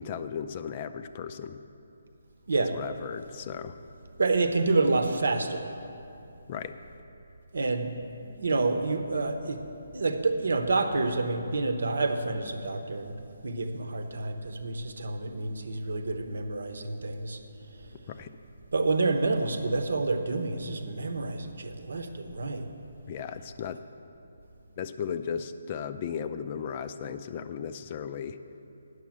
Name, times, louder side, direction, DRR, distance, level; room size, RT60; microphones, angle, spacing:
voice 1, 0.0-1.6 2.7-3.8 6.5-6.8 18.1-18.3 23.1-23.8 24.8-28.4, left 7 dB, 30° left, 10 dB, 0.3 m, -36 dB
voice 2, 4.2-5.7 7.5-7.9 8.2-9.6 9.9-13.1 13.4-17.4 18.7-22.7, right 3 dB, 75° right, 7 dB, 0.9 m, -28 dB
9.6 x 6.3 x 7.3 m, 2.7 s
hypercardioid pair, 165°, 0 cm